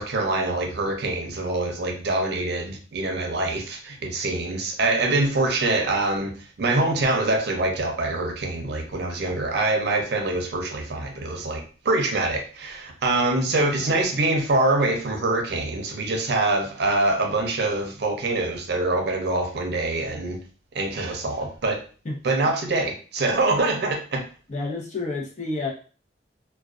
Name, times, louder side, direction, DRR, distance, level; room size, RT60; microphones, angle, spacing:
voice 1, 0.0-20.4 20.7-21.8 22.2-24.2, right 2 dB, 65° right, 3 dB, 0.5 m, -24 dB
voice 2, 13.5-14.0 22.0-22.2 24.5-25.7, left 3 dB, 40° left, -2 dB, 0.7 m, -30 dB
2.3 x 2.2 x 2.4 m, 0.38 s
head